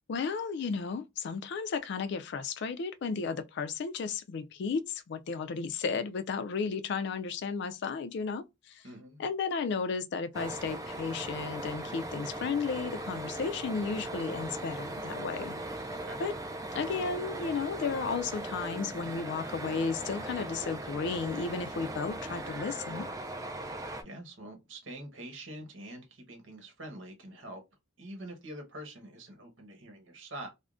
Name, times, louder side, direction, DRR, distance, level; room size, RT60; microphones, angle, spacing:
voice 1, 0.1-8.8 9.2-15.9 16.2-16.3 16.7-23.1, left 5 dB, 60° left, 0.3 m, -34 dB
voice 2, 8.8-9.2 15.9-16.2 24.0-27.6 28.0-30.5, right 1 dB, 70° right, 1.1 m, -45 dB
sound 1, 10.3-24.0, right 1 dB, 15° right, 0.3 m, -39 dB
3.5 x 2.1 x 2.4 m
head